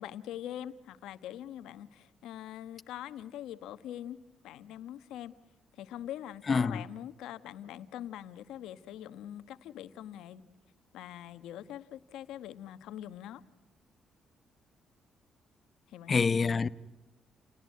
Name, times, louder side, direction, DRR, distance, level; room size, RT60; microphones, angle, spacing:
voice 1, 0.0-4.2 4.4-5.3 5.8-10.4 10.9-13.4 15.9-16.1, left 11 dB, 90° left, 1.2 m, -43 dB
voice 2, 6.4-6.8 16.1-16.7, left 5 dB, 40° left, 0.9 m, -26 dB
29.5 x 19.0 x 9.4 m
cardioid pair, 90°, 0 cm